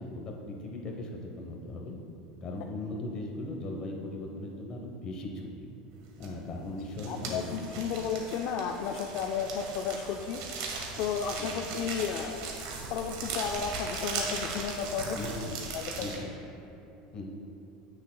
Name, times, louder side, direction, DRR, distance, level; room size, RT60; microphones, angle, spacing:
voice 1, 0.0-2.0 2.4-5.7 6.2-7.6 11.4-11.6 15.1-15.6 16.0-16.3 17.1-17.4, left 2 dB, 30° left, 1 dB, 0.9 m, -38 dB
sound 1, 6.2-6.5 6.8-16.2, right 4 dB, 60° right, 1.4 m, -38 dB
voice 2, 7.1-10.4 11.0-12.5 12.9-15.3 15.7-16.2, left 7 dB, 45° left, 3 dB, 0.4 m, -33 dB
16.0 x 6.4 x 2.3 m, 2.8 s
cardioid pair, 180°, 3 cm